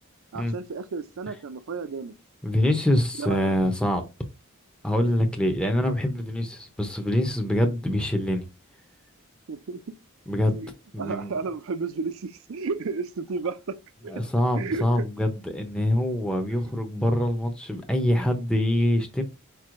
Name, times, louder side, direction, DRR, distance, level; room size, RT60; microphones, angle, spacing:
voice 1, 0.3-2.1 3.2-3.6 9.5-10.0 10.5-13.8 14.0-14.2 14.5-15.1 16.5-16.7, right 4 dB, 65° right, 0.5 m, -33 dB
voice 2, 2.4-4.1 4.8-8.5 10.3-10.6 10.9-11.3 14.1-19.2, left 1 dB, 5° left, 0.6 m, -24 dB
4.6 x 4.2 x 2.5 m
head